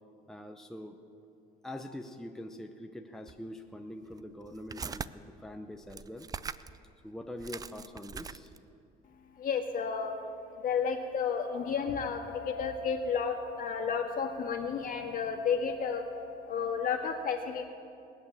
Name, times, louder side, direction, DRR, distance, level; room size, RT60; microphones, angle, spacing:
voice 1, 0.3-1.0 1.6-6.3 7.0-8.5, left 1 dB, 5° left, 4 dB, 0.8 m, -44 dB
sound 1, 3.3-3.4 4.1-5.1 5.8-6.8 7.1-7.2 7.4-8.7, right 6 dB, 20° right, 0.4 m, -41 dB
voice 2, 9.4-10.1 10.6-17.6, left 6 dB, 55° left, 3 dB, 1.8 m, -32 dB
19.0 x 8.8 x 7.3 m, 2.6 s
cardioid pair, 110°, 17 cm